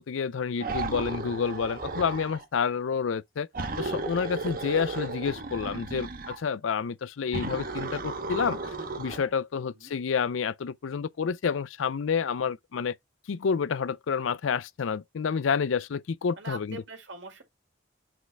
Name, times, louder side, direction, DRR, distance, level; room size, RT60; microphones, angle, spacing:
voice 1, 0.0-3.5 3.8-8.6 9.0-13.0 13.3-16.8, left 6 dB, 80° left, 0.4 m, -29 dB
sound 1, 0.6-2.4 3.5-6.4 7.3-9.3, right 3 dB, 45° right, 1.0 m, -34 dB
voice 2, 9.5-10.0 16.4-17.4, right 3 dB, 65° right, 2.3 m, -43 dB
7.6 x 4.0 x 3.4 m
head